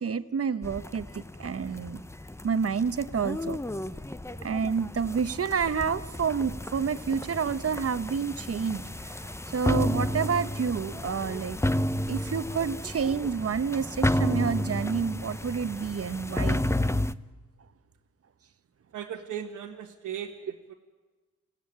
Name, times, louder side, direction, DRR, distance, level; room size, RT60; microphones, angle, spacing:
voice 1, 0.0-2.0 2.4-3.6 4.4-11.6 12.1-16.6, right 6 dB, 50° right, 12 dB, 1.1 m, -29 dB
sound 1, 0.6-17.1, left 1 dB, 10° left, 0.8 m, -32 dB
voice 2, 18.9-20.7, right 9 dB, 90° right, 0 dB, 1.6 m, -37 dB
26.5 x 16.5 x 8.8 m, 1.3 s
supercardioid pair, 55°, 30 cm